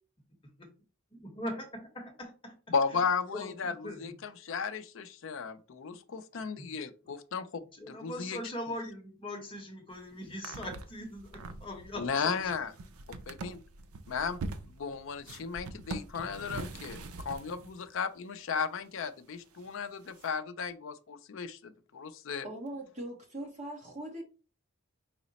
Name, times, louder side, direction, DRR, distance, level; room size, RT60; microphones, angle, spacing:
voice 1, 1.1-3.0 3.3-4.1 6.4-6.7 7.7-12.5, left 1 dB, 25° left, 0.9 m, -41 dB
voice 2, 2.7-3.7 4.0-4.1 4.4-7.6 7.9-8.4 12.0-12.7 13.3-13.6 14.1-14.4 14.6-17.0 17.2-22.5, left 5 dB, 60° left, 0.4 m, -35 dB
sound 1, 9.9-10.0 10.3-17.9 18.8-18.9 19.6-19.7 20.2-20.3, right 3 dB, 75° right, 0.5 m, -43 dB
voice 3, 22.4-24.2, right 1 dB, 30° right, 0.9 m, -40 dB
4.8 x 2.0 x 4.0 m
head